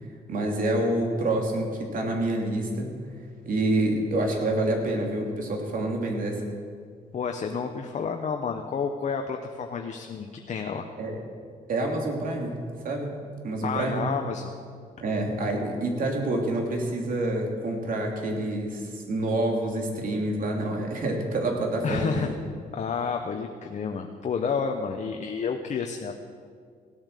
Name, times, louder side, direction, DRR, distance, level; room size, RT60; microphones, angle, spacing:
voice 1, 0.3-2.9 3.4-6.4 11.0-11.2 11.7-12.5 12.8-13.2 13.4-14.0 15.0-22.4, right 1 dB, 60° right, 1 dB, 3.0 m, -27 dB
voice 2, 7.1-10.9 13.6-14.6 21.8-22.3 22.7-26.1, left 6 dB, 50° left, 4 dB, 1.0 m, -30 dB
17.0 x 8.8 x 6.7 m, 2.1 s
cardioid pair, 75°, 16 cm